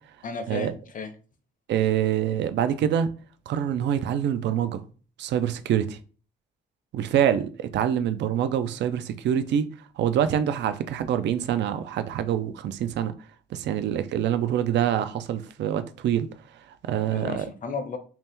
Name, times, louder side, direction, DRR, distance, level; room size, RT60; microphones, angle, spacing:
voice 1, 0.2-1.1 17.1-18.0, left 4 dB, 40° left, 0.6 m, -34 dB
voice 2, 1.7-3.1 3.5-4.8 5.2-6.0 6.9-9.7 10.0-13.1 13.5-16.3 16.7-17.5, right 9 dB, 65° right, 0.4 m, -25 dB
2.8 x 2.1 x 3.5 m
cardioid pair, 90°, 20 cm